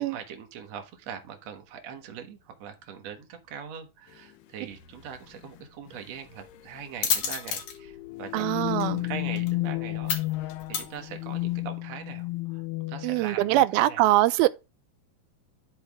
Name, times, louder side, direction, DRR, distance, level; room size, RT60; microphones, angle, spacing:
voice 1, 0.0-14.0, right 7 dB, 60° right, 1.7 m, -42 dB
sound 1, 4.2-4.3 5.3-5.6 5.9-6.0 6.4-6.7 7.7-13.4, left 20 dB, 85° left, 2.7 m, -32 dB
sound 2, 4.7-11.6, left 7 dB, 60° left, 2.0 m, -35 dB
voice 2, 8.3-9.0 13.0-14.5, right 15 dB, 80° right, 2.2 m, -23 dB
12.0 x 4.4 x 3.5 m
omnidirectional pair, 4.6 m